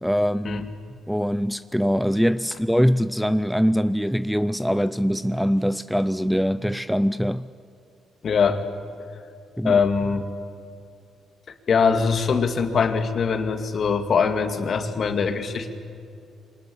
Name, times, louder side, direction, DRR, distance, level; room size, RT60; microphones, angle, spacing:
voice 1, 0.0-0.6 1.1-7.5 9.6-9.8, equal, ahead, 0.5 m, -23 dB
voice 2, 8.2-8.6 9.6-10.3 11.7-15.8, left 5 dB, 50° left, 2.3 m, -22 dB
24.5 x 19.5 x 9.9 m
cardioid pair, 90°, 0 cm